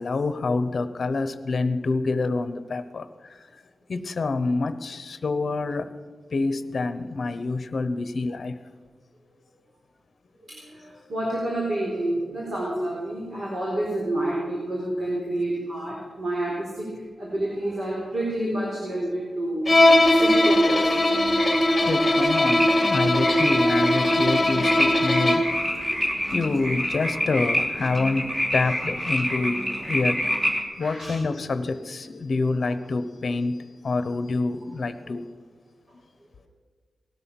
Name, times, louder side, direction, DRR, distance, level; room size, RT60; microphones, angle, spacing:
voice 1, 0.0-3.4 3.9-5.9 6.3-8.6 21.8-30.2 30.8-33.6 33.8-35.3, left 3 dB, 45° left, 12 dB, 0.9 m, -27 dB
voice 2, 10.5-16.9 17.2-20.9 30.8-31.1, right 1 dB, 50° right, -5 dB, 4.3 m, -29 dB
Bowed string instrument, 19.7-25.6, left 1 dB, 20° left, 1.6 m, -20 dB
sound 1, 19.7-30.6, equal, 15° right, 2.6 m, -28 dB
18.5 x 12.5 x 6.0 m, 1.5 s
wide cardioid pair, 165°, 0 cm